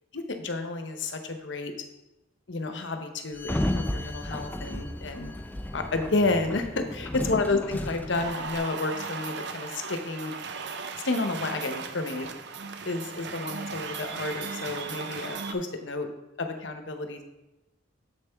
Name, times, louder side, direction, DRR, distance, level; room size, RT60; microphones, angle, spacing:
voice 1, 0.1-1.7 2.5-5.3 5.7-10.3 11.0-12.3 12.8-16.1 16.4-17.2, left 3 dB, 70° left, 6 dB, 0.9 m, -30 dB
Sliding door, 3.3-8.6, left 1 dB, 10° left, 0.4 m, -33 dB
sound 1, 8.1-15.5, right 5 dB, 65° right, 0.6 m, -37 dB
7.5 x 6.7 x 3.5 m, 0.98 s
head